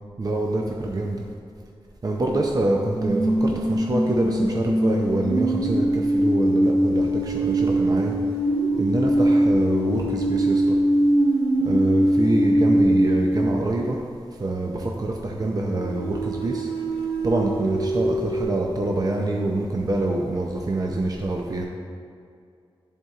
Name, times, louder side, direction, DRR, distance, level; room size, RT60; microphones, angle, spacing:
voice 1, 0.2-1.2 2.0-8.2 8.7-10.8 11.6-14.0 14.3-16.7 17.2-21.6, right 2 dB, 40° right, 0 dB, 0.5 m, -25 dB
sound 1, 2.9-13.9 15.7-18.4, right 1 dB, 75° right, 1.5 m, -22 dB
10.5 x 4.4 x 2.4 m, 2.4 s
wide cardioid pair, 85°, 10 cm